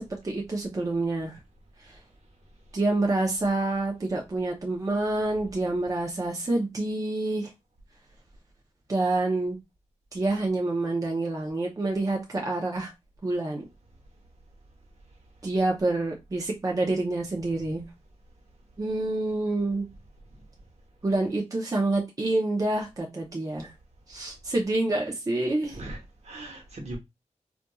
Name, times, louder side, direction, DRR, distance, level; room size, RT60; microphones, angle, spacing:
voice 1, 0.0-1.4 1.8-1.9 2.7-7.5 8.9-9.6 10.1-12.9 13.2-13.7 15.4-17.8 18.8-19.9 21.0-23.7 24.1-25.8, right 2 dB, 30° right, 0.7 m, -27 dB
voice 2, 25.7-27.0, right 1 dB, 60° right, 1.1 m, -40 dB
4.1 x 2.5 x 2.3 m
wide cardioid pair, 150°, 12 cm